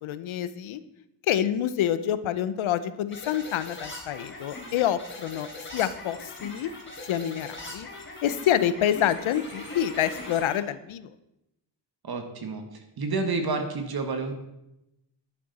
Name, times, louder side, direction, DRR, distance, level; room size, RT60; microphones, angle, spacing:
voice 1, 0.0-0.8 1.3-6.7 7.1-7.9 8.2-11.1, left 10 dB, 75° left, 14 dB, 0.8 m, -27 dB
sound 1, 3.1-10.6, left 2 dB, 25° left, 3.4 m, -41 dB
voice 2, 12.0-12.7 13.0-14.3, right 3 dB, 50° right, 6 dB, 1.8 m, -29 dB
10.5 x 9.8 x 4.2 m, 0.88 s
cardioid pair, 105°, 48 cm